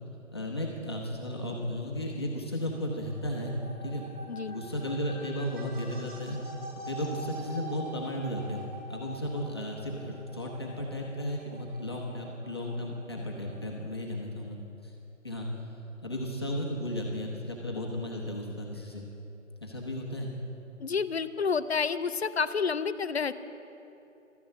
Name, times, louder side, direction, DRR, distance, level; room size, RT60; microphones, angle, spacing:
voice 1, 0.3-3.6 3.8-4.0 4.5-6.4 6.9-8.6 8.9-14.9 15.2-15.5 16.0-19.1 19.6-20.3, equal, 20° left, -2 dB, 0.9 m, -34 dB
sound 1, 2.6-13.9, equal, 40° right, 2.1 m, -46 dB
voice 2, 20.8-23.3, left 5 dB, 55° left, 12 dB, 0.6 m, -29 dB
12.5 x 10.0 x 7.6 m, 2.9 s
figure-of-eight pair, 170°, 39 cm